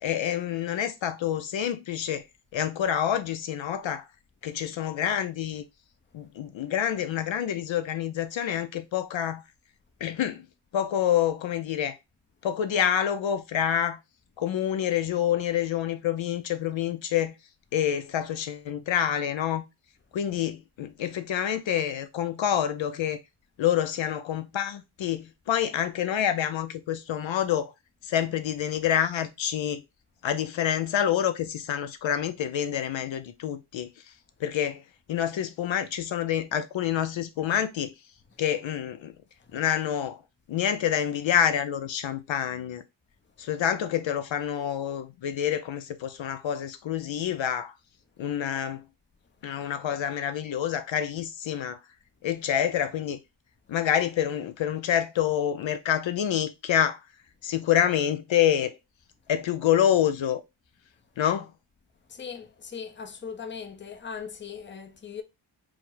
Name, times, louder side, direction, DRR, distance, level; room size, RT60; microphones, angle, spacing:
voice 1, 0.0-2.2 2.5-4.1 4.4-5.6 6.1-9.4 10.0-10.4 10.7-12.0 12.4-14.0 14.4-17.3 17.7-19.6 20.1-23.2 23.6-27.7 28.0-29.8 30.2-34.1 34.4-34.8 35.1-37.9 38.4-39.1 39.5-40.2 40.5-42.8 43.4-47.7 48.2-48.8 49.4-51.8 52.2-53.2 53.7-57.0 57.4-58.8 59.3-60.4 61.2-61.5, left 10 dB, 65° left, 0.5 m, -27 dB
voice 2, 62.1-65.2, left 6 dB, 25° left, 0.6 m, -39 dB
4.7 x 2.1 x 3.8 m
wide cardioid pair, 100°, 50 cm